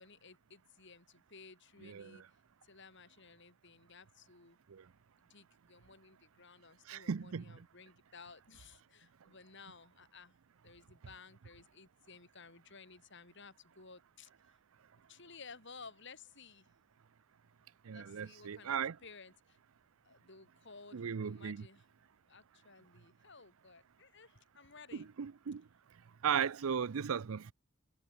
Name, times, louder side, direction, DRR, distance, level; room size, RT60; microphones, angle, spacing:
voice 1, 0.0-2.2 2.6-4.6 5.2-10.3 10.6-14.3 15.1-16.7 17.9-19.6 20.0-21.8 22.3-25.1, left 4 dB, 60° left, 4.8 m, -56 dB
voice 2, 1.8-2.2 4.7-4.9 6.9-7.7 17.8-19.0 20.9-21.7 24.9-25.7 26.2-27.5, right 7 dB, 85° right, 0.5 m, -37 dB
head